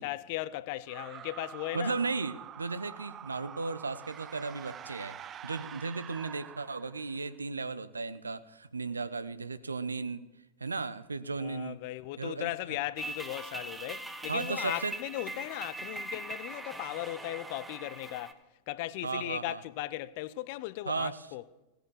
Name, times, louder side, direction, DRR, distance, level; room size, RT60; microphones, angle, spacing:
voice 1, 0.0-1.9 11.4-18.3 18.7-21.4, left 16 dB, 50° left, 0.6 m, -37 dB
sound 1, 0.8-7.3, right 9 dB, 25° right, 0.5 m, -46 dB
voice 2, 1.7-10.3 10.6-11.8 12.2-12.5 14.3-14.9 19.0-19.6 20.9-21.3, right 4 dB, 75° right, 0.8 m, -35 dB
sound 2, 13.0-18.3, right 2 dB, 10° right, 1.4 m, -41 dB
17.5 x 10.5 x 6.6 m
figure-of-eight pair, 90°, 0 cm